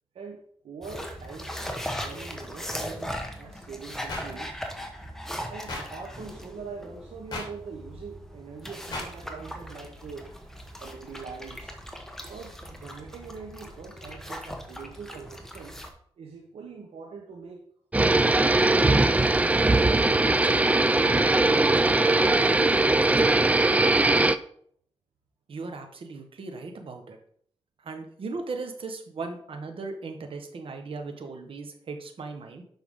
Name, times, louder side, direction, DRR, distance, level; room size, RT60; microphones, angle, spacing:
voice 1, 0.1-4.6 5.5-10.3 10.8-11.8 12.3-15.8 16.2-17.6 17.9-20.3, right 5 dB, 80° right, 1 dB, 0.9 m, -43 dB
sound 1, 0.8-15.9, equal, 5° left, 1.2 m, -39 dB
sound 2, 4.1-4.2 5.7-5.8 7.3-7.5 8.9-9.1, left 2 dB, 45° left, 3.0 m, -33 dB
sound 3, 17.9-24.4, right 2 dB, 15° right, 0.4 m, -20 dB
voice 2, 25.5-27.2 27.8-32.6, right 3 dB, 65° right, 4 dB, 1.3 m, -37 dB
7.3 x 5.6 x 3.7 m, 0.62 s
cardioid pair, 75°, 10 cm